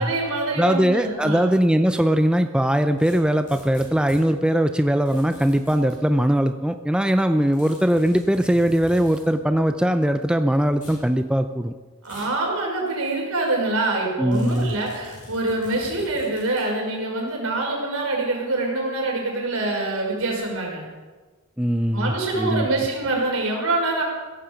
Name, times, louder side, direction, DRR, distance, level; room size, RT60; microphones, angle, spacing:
voice 1, 0.0-1.5 12.0-20.8 21.9-24.0, right 2 dB, 70° right, -1 dB, 5.1 m, -25 dB
voice 2, 0.6-11.7 14.2-14.8 21.6-22.7, equal, 5° right, 8 dB, 0.5 m, -20 dB
sound 1, 3.0-4.3 5.1-6.0 7.5-9.3 10.7-11.1 12.0-12.4 12.9-13.0 14.3-16.7, left 1 dB, 40° left, 6.1 m, -45 dB
16.5 x 14.0 x 5.2 m, 1.3 s
head